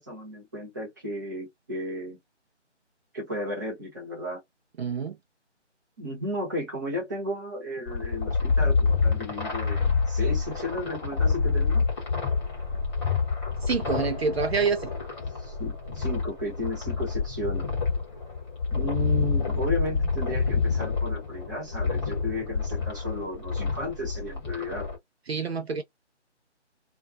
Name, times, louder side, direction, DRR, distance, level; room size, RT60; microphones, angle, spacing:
voice 1, 0.0-2.2 3.1-4.4 6.0-11.8 15.4-17.7 18.7-24.9, left 1 dB, 15° right, 0.8 m, -34 dB
voice 2, 4.8-5.2 13.6-14.9 25.3-25.8, right 5 dB, 60° right, 0.5 m, -27 dB
sound 1, 7.9-25.0, left 5 dB, 25° left, 1.1 m, -27 dB
2.3 x 2.2 x 2.5 m
figure-of-eight pair, 160°, 36 cm